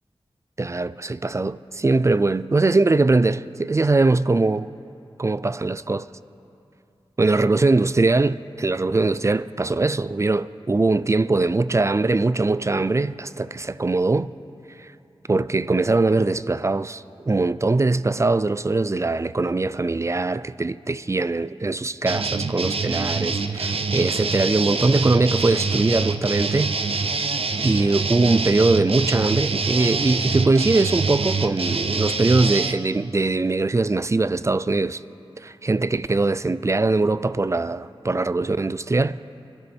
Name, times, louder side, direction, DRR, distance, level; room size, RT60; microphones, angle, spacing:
voice 1, 0.6-4.7 5.2-6.1 7.2-14.3 14.8-14.9 15.3-26.8 27.6-35.0 35.4-39.2, right 3 dB, 30° right, 0.3 m, -21 dB
sound 1, 22.1-32.7, right 4 dB, 70° right, 0.7 m, -25 dB
24.5 x 11.0 x 4.4 m
wide cardioid pair, 80°, 10 cm